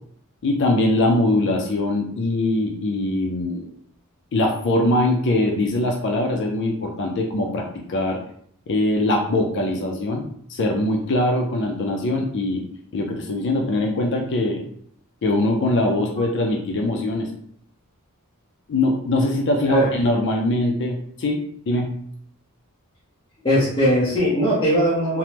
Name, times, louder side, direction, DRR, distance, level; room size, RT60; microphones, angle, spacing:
voice 1, 0.4-3.7 4.3-7.6 7.9-8.2 8.7-10.2 10.5-12.6 12.9-14.6 15.2-17.3 18.7-21.4 21.7-21.9, left 1 dB, 55° left, 1 dB, 0.4 m, -22 dB
voice 2, 23.4-25.2, equal, 25° left, -9 dB, 0.8 m, -19 dB
3.3 x 2.0 x 2.8 m, 0.64 s
head